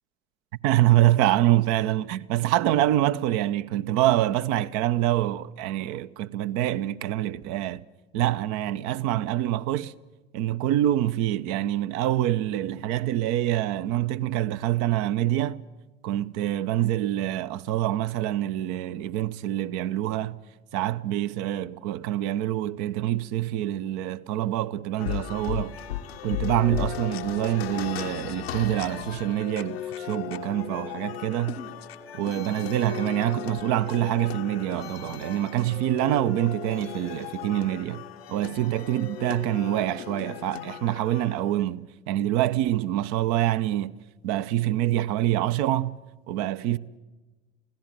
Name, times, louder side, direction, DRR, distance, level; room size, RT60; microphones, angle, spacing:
voice 1, 0.6-7.8 8.1-9.9 10.3-15.6 16.0-20.4 20.7-25.7 26.2-31.6 32.1-38.0 38.3-46.0 46.3-46.8, right 13 dB, 60° right, 0.8 m, -26 dB
sound 1, 25.0-41.6, left 10 dB, 80° left, 1.0 m, -36 dB
25.0 x 16.5 x 9.2 m
figure-of-eight pair, 60°, 30 cm